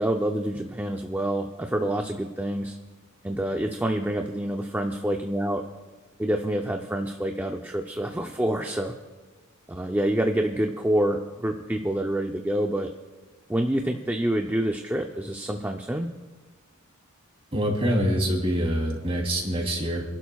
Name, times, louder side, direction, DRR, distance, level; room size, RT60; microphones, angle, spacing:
voice 1, 0.0-2.8 3.2-5.6 6.2-8.9 9.7-12.9 13.5-16.1, right 1 dB, 10° right, 3 dB, 0.5 m, -27 dB
voice 2, 17.5-20.0, equal, 25° right, -1 dB, 3.2 m, -25 dB
29.0 x 11.5 x 2.3 m, 1.3 s
head